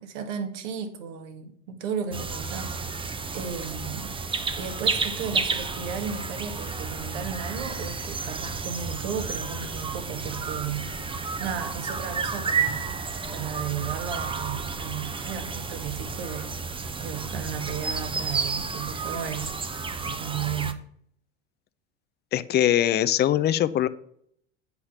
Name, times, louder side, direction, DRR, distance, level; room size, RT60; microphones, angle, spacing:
voice 1, 0.0-2.8 3.3-4.1 4.6-12.9 13.3-16.5 17.0-19.5 20.0-20.8, right 7 dB, 65° right, 1.9 m, -34 dB
sound 1, 2.1-20.7, right 4 dB, 15° right, 0.8 m, -31 dB
voice 2, 22.3-23.9, left 11 dB, 25° left, 0.6 m, -22 dB
8.3 x 5.6 x 6.6 m
hypercardioid pair, 80°, 39 cm